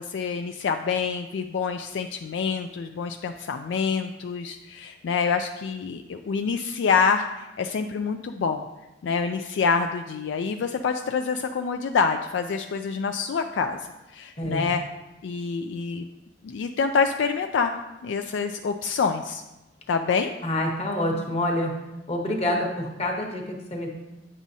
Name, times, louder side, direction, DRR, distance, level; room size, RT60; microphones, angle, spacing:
voice 1, 0.0-8.6 9.0-13.8 14.1-14.8 15.2-16.1 16.4-17.8 18.0-19.4 19.9-20.3, left 5 dB, 70° left, 6 dB, 0.3 m, -26 dB
voice 2, 14.4-14.7 20.4-21.7 22.1-23.9, left 1 dB, 35° left, 1 dB, 1.1 m, -27 dB
8.6 x 6.1 x 2.7 m, 1.0 s
head